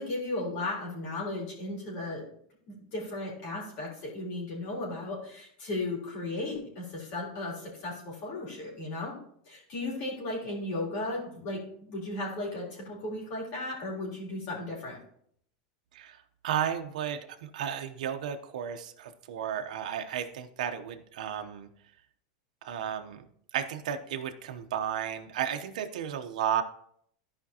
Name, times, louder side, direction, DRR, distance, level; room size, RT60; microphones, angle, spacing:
voice 1, 0.0-2.3 2.7-9.1 9.5-15.0, left 2 dB, 50° left, -3 dB, 3.6 m, -35 dB
voice 2, 16.4-21.7 22.6-23.2 23.5-26.6, right 9 dB, 85° right, 6 dB, 0.8 m, -33 dB
13.5 x 5.1 x 2.9 m, 0.66 s
supercardioid pair, 150°, 4 cm